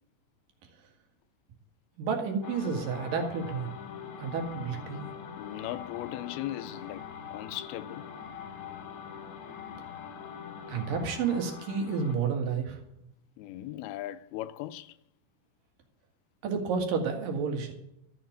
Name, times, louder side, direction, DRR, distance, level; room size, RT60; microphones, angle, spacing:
voice 1, 2.0-3.7 4.2-5.1 10.7-12.8 16.4-17.7, right 5 dB, 65° right, 3.5 m, -30 dB
sound 1, 2.4-12.2, left 7 dB, 60° left, 2.2 m, -43 dB
voice 2, 5.4-7.1 7.3-8.0 13.4-15.0, left 14 dB, 85° left, 2.6 m, -38 dB
13.0 x 7.2 x 9.4 m
omnidirectional pair, 4.3 m